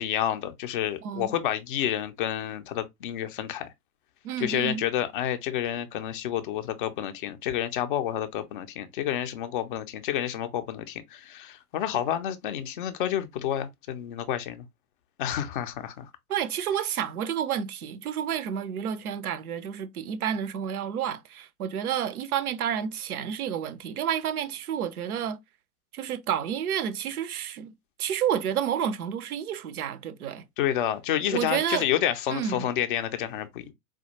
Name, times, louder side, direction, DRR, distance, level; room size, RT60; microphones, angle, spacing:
voice 1, 0.0-3.7 4.4-14.7 15.2-16.1 30.6-33.7, left 11 dB, 35° left, 0.4 m, -29 dB
voice 2, 1.0-1.3 4.2-4.8 16.3-25.4 25.9-30.4 31.3-31.9 32.3-32.7, right 9 dB, 65° right, 0.6 m, -30 dB
4.2 x 2.2 x 2.7 m
figure-of-eight pair, 100°, 48 cm